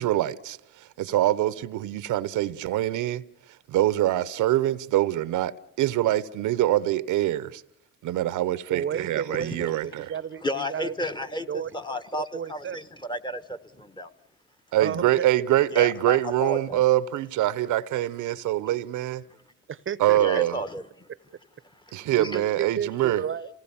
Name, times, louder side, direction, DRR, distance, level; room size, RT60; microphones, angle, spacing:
voice 1, 0.0-3.2 3.7-7.6 8.0-10.1 14.7-19.2 20.0-20.6 21.9-23.2, right 14 dB, 85° right, 0.9 m, -24 dB
voice 2, 8.7-11.1 11.5-11.8 12.3-12.8 14.8-15.5 19.7-20.4 21.9-23.5, right 8 dB, 40° right, 0.8 m, -32 dB
voice 3, 10.4-14.1 15.7-16.8 20.2-21.1 21.9-22.4, equal, 15° left, 1.3 m, -33 dB
28.0 x 17.5 x 7.1 m
cardioid pair, 90°, 30 cm